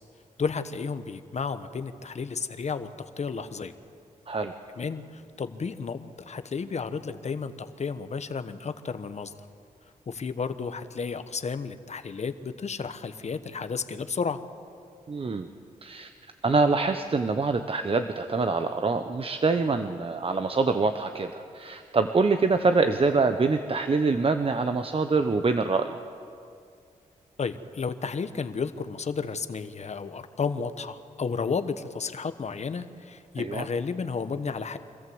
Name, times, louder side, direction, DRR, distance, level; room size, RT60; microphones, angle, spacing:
voice 1, 0.4-2.9 3.2-3.7 4.8-9.3 10.1-14.4 27.4-34.8, left 5 dB, 55° left, 11 dB, 1.1 m, -32 dB
voice 2, 15.1-15.5 15.8-16.1 16.4-26.0 33.4-33.6, right 4 dB, 40° right, 7 dB, 0.9 m, -25 dB
25.5 x 14.5 x 7.9 m, 2.4 s
cardioid pair, 70°, 14 cm